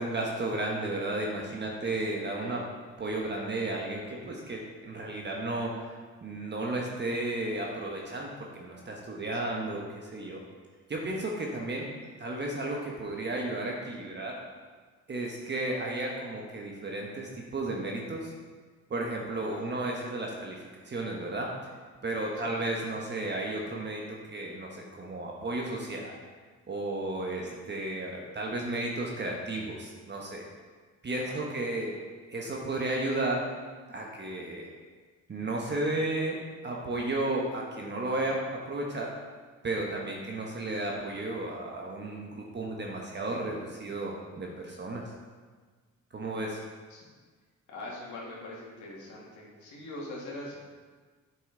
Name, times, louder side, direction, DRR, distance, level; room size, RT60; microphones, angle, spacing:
voice 1, 0.0-2.6 3.0-10.4 10.9-11.9 12.2-14.4 15.1-18.3 18.9-21.5 22.0-26.1 26.7-30.4 31.0-31.9 32.3-33.4 33.9-34.7 35.3-39.1 39.6-45.0 46.1-46.6, right 2 dB, 35° right, -1 dB, 1.2 m, -33 dB
voice 2, 9.3-9.8 19.5-19.9 22.4-22.5 27.3-27.6 31.2-32.0 46.9-47.0 47.7-50.6, left 1 dB, 70° left, -4 dB, 1.9 m, -43 dB
8.1 x 6.1 x 3.9 m, 1.5 s
cardioid pair, 90°, 30 cm